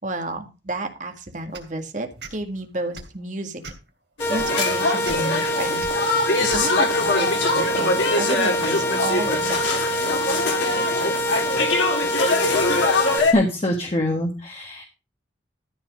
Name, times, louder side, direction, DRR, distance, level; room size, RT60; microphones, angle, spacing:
voice 1, 0.0-3.6 4.3-9.7, right 2 dB, 45° right, 5 dB, 1.9 m, -31 dB
sound 1, 1.5-1.7 2.2-2.3 2.9-3.1 3.6-3.9 4.4-4.5 5.0-5.2 5.8-5.9 6.5-6.6, right 4 dB, 75° right, 2.8 m, -36 dB
sound 2, 4.2-13.3, left 3 dB, 85° left, 2.8 m, -23 dB
sound 3, 4.2-13.2, equal, 15° left, 1.9 m, -26 dB
voice 2, 13.3-14.8, left 1 dB, 35° left, 2 dB, 1.7 m, -23 dB
13.5 x 4.7 x 6.3 m, 0.30 s
head